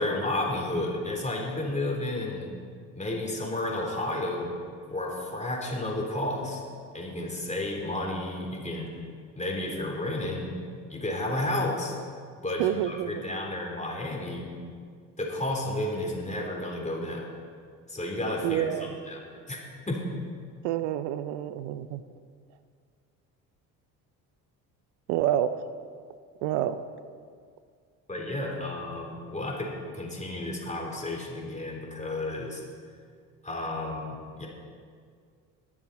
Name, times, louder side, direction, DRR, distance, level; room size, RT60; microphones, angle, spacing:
voice 1, 0.0-2.5 3.0-4.5 4.9-6.6 6.9-8.9 9.4-10.6 10.9-11.9 12.4-14.5 15.2-17.3 17.9-19.6 19.9-20.1 28.1-32.6 33.4-34.5, left 1 dB, 15° left, -1 dB, 3.6 m, -32 dB
voice 2, 12.6-13.2 18.4-19.0 20.6-22.0 25.1-25.5 26.4-26.8, right 12 dB, 70° right, 12 dB, 0.6 m, -28 dB
21.5 x 7.3 x 4.1 m, 2.1 s
hypercardioid pair, 60°, 44 cm